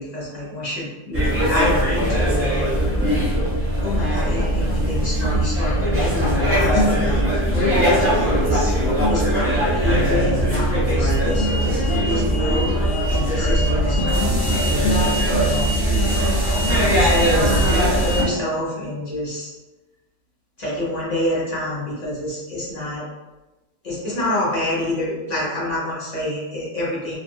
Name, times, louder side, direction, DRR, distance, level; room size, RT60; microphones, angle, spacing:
voice 1, 0.0-3.3 3.8-15.6 16.7-19.5 20.6-23.1 23.8-27.2, left 1 dB, 35° left, -8 dB, 0.7 m, -27 dB
sound 1, 1.1-18.2, equal, 15° right, 0.5 m, -20 dB
sound 2, 6.2-17.6, left 1 dB, 80° left, 1.2 m, -29 dB
2.6 x 2.5 x 2.6 m, 1.1 s
omnidirectional pair, 1.8 m